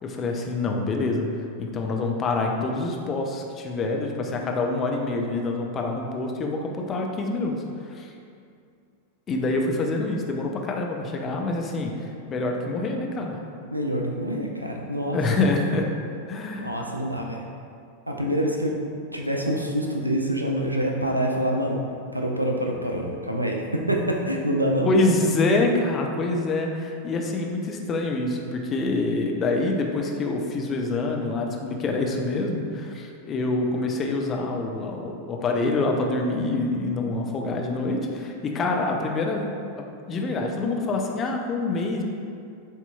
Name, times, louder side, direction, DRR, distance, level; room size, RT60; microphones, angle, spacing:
voice 1, 0.0-1.3 1.6-7.5 8.0-8.1 9.3-11.9 12.3-13.4 15.1-15.9 16.3-16.7 24.8-39.5 40.1-42.0, left 2 dB, 25° left, 1 dB, 0.5 m, -26 dB
voice 2, 13.7-15.6 16.6-17.4 18.1-18.8 19.1-21.8 22.1-24.9, equal, 85° right, 1 dB, 0.4 m, -26 dB
7.8 x 2.9 x 2.3 m, 2.4 s
figure-of-eight pair, 90°, 0 cm